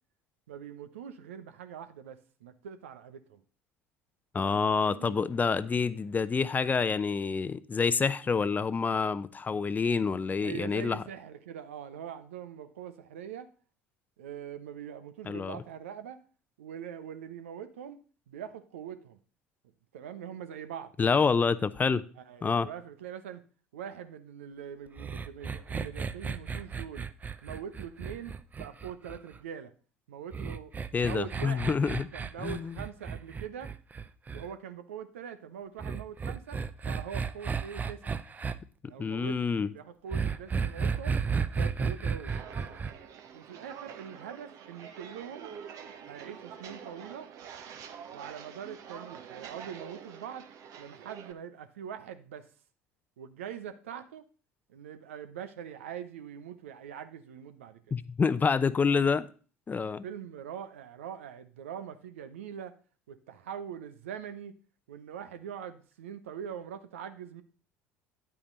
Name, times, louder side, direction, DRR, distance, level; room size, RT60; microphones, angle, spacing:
voice 1, 0.5-3.4 4.4-5.2 10.4-13.5 14.2-16.2 16.6-18.0 18.3-19.2 19.9-20.9 22.2-23.4 23.7-27.1 27.4-29.7 30.1-30.7 31.0-31.7 32.1-33.7 34.3-38.2 38.9-41.2 41.5-42.4 43.3-45.5 46.1-47.3 48.1-50.5 50.8-52.5 53.2-54.2 54.7-57.9 60.0-62.7 63.1-64.6 64.9-67.4, right 8 dB, 75° right, 0.9 m, -43 dB
voice 2, 4.3-11.0 15.3-15.6 21.0-22.0 22.4-22.7 30.9-32.1 32.4-32.8 39.0-39.7 57.9-59.3 59.7-60.0, left 5 dB, 25° left, 0.7 m, -27 dB
sound 1, 25.0-29.4 30.3-34.5 35.8-38.5 40.1-42.9, right 5 dB, 25° right, 0.6 m, -33 dB
Walk footsteps, 42.3-51.3, right 8 dB, 50° right, 1.2 m, -46 dB
9.9 x 8.7 x 3.9 m
figure-of-eight pair, 65°, 7 cm